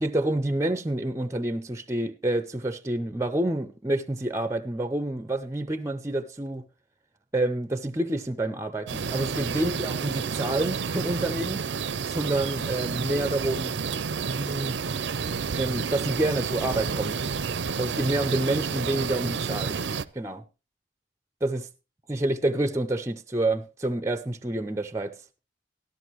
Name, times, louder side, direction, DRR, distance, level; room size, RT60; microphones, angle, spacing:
voice 1, 0.0-6.6 7.3-11.7 12.1-13.8 14.2-14.8 15.6-17.2 17.8-19.8 20.1-20.4 21.4-21.7 22.1-25.1, right 1 dB, 15° right, 0.5 m, -28 dB
sound 1, 8.9-20.0, right 5 dB, 75° right, 0.5 m, -30 dB
13.0 x 12.5 x 3.0 m
head